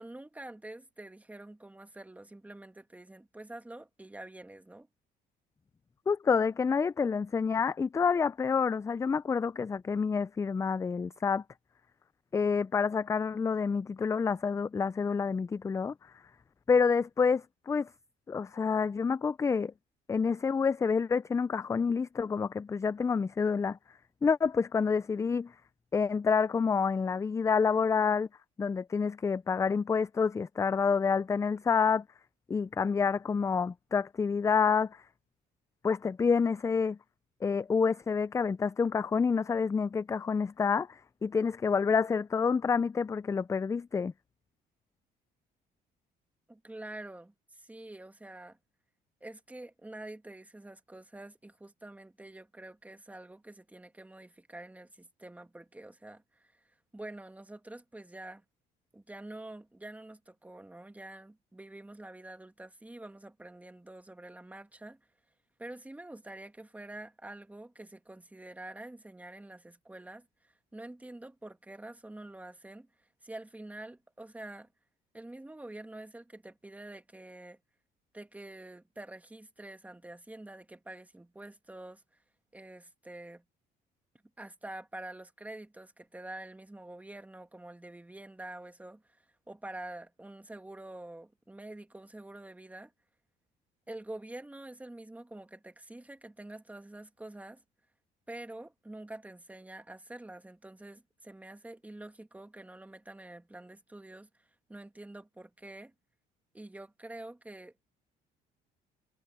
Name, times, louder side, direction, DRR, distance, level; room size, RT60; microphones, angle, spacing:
voice 1, 0.0-4.9 46.5-48.6 49.2-56.6 56.9-58.4 58.9-65.0 65.6-72.9 73.2-74.7 75.1-77.6 78.1-82.0 82.5-83.4 84.4-92.9 93.9-97.6 98.3-104.3 104.7-105.9 106.5-107.9, right 1 dB, 10° right, 2.2 m, -47 dB
voice 2, 6.1-11.4 12.3-16.1 16.7-17.9 18.3-19.7 20.1-23.8 24.2-25.5 25.9-28.3 28.6-32.0 32.5-35.0 35.8-37.0 37.4-44.1, left 5 dB, 15° left, 0.4 m, -28 dB
cardioid pair, 110°, 17 cm